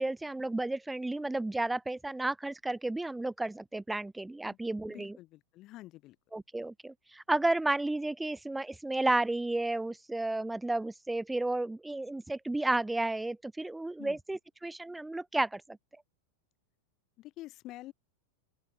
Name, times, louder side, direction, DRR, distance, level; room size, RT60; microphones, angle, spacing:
voice 1, 0.0-5.2 6.3-15.6, right 2 dB, 5° right, 0.6 m, -32 dB
voice 2, 4.9-6.2 14.0-14.2 17.2-17.9, left 17 dB, 35° left, 2.0 m, -48 dB
open air
figure-of-eight pair, 90°, 0 cm